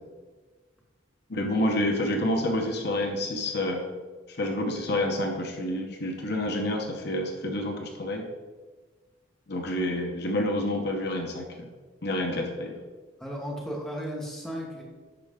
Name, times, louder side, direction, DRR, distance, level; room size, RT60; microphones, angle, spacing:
voice 1, 1.3-3.9 4.3-8.2 9.5-11.7 12.0-12.8, left 1 dB, 55° left, 2 dB, 1.0 m, -28 dB
voice 2, 13.2-14.8, equal, 5° left, -3 dB, 1.4 m, -35 dB
11.0 x 4.6 x 3.7 m, 1.4 s
head